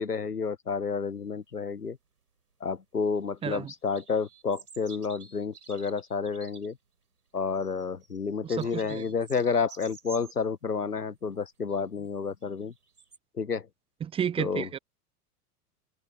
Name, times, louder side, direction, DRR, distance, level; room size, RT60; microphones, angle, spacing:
voice 1, 0.0-2.0 2.6-6.8 7.3-12.7 13.4-13.7 14.4-14.7, left 5 dB, 85° left, 1.1 m, -30 dB
sound 1, 3.2-3.5 3.7-6.7 7.5-10.4 11.7-12.1 12.4-13.2, right 5 dB, 80° right, 6.1 m, -51 dB
voice 2, 8.4-9.0 14.0-14.8, right 8 dB, 15° right, 0.6 m, -32 dB
open air
figure-of-eight pair, 90°, 45 cm